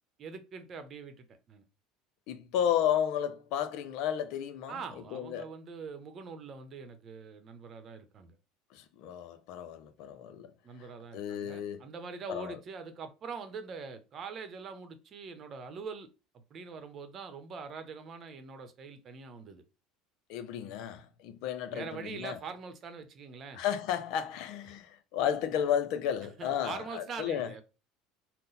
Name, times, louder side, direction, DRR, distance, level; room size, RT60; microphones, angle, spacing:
voice 1, 0.2-1.6 4.7-8.4 10.6-19.6 21.7-23.6 26.4-27.6, right 5 dB, 45° right, 0.8 m, -43 dB
voice 2, 2.3-4.8 5.1-5.5 8.7-10.5 11.1-11.8 12.3-12.6 20.3-22.4 23.5-27.5, left 9 dB, 65° left, 0.5 m, -33 dB
3.8 x 2.2 x 4.0 m
hypercardioid pair, 80°, 0 cm